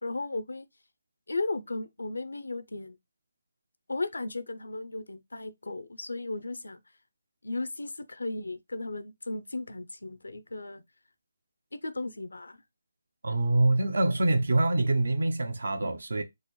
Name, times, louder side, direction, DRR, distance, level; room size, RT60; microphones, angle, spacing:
voice 1, 0.0-0.7 1.3-3.0 3.9-6.8 7.4-10.8 11.7-12.6, left 2 dB, 85° left, 0.5 m, -35 dB
voice 2, 13.2-16.2, right 2 dB, 70° right, 0.7 m, -25 dB
3.8 x 2.0 x 3.1 m
figure-of-eight pair, 155°, 0 cm